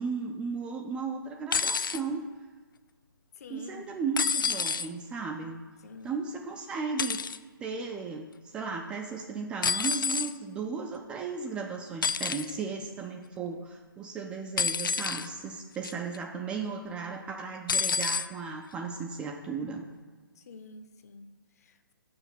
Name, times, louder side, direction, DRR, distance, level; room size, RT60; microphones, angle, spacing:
voice 1, 0.0-2.2 3.5-5.6 6.0-7.2 7.6-19.9, right 5 dB, 10° right, 1 dB, 0.3 m, -35 dB
sound 1, 1.5-2.0 4.2-4.9 7.0-7.4 9.6-10.3 12.0-12.5 14.6-15.3 15.8-16.2 17.7-18.3 19.3-19.4, left 5 dB, 65° left, 0.4 m, -28 dB
voice 2, 3.4-3.9 5.8-6.1 13.4-13.6 20.3-21.9, left 3 dB, 45° left, 8 dB, 0.8 m, -49 dB
6.0 x 5.7 x 7.0 m, 1.4 s
figure-of-eight pair, 135°, 12 cm